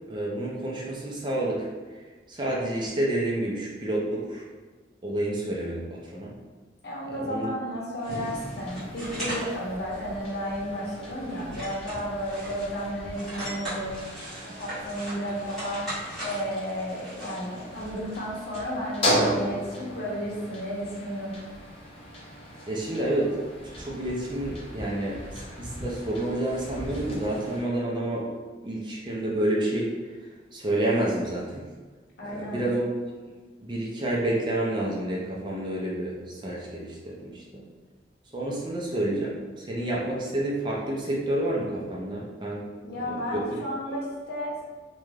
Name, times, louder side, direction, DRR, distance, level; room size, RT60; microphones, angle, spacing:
voice 1, 0.1-1.7 1.9-2.0 2.3-4.4 5.0-6.3 7.2-7.5 22.7-23.3 23.6-28.3 28.6-29.9 30.5-31.6 32.2-32.9 33.6-37.6 38.3-42.6 42.9-43.6, right 1 dB, 25° right, -4 dB, 0.4 m, -29 dB
voice 2, 6.8-14.0 14.4-15.9 16.2-21.4 32.2-32.7 42.8-44.6, equal, 60° left, -5 dB, 0.8 m, -33 dB
sound 1, 8.0-9.5 9.9-10.0 10.5-10.7 11.0-12.8 13.1-18.2, right 1 dB, 5° left, 1.2 m, -39 dB
sound 2, 8.1-27.6, equal, 30° left, 0.5 m, -36 dB
2.5 x 2.2 x 3.2 m, 1.4 s
head